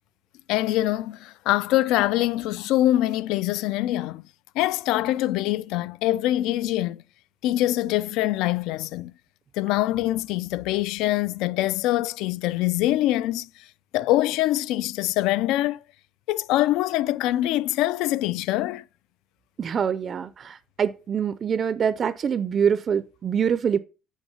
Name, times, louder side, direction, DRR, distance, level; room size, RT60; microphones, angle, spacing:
voice 1, 0.5-4.2 4.6-7.0 7.4-9.1 9.6-13.5 13.9-15.8 16.3-18.8, left 15 dB, 80° left, 0.3 m, -24 dB
voice 2, 19.6-23.8, right 7 dB, 30° right, 0.4 m, -25 dB
7.1 x 5.6 x 5.5 m
cardioid pair, 180°, 0 cm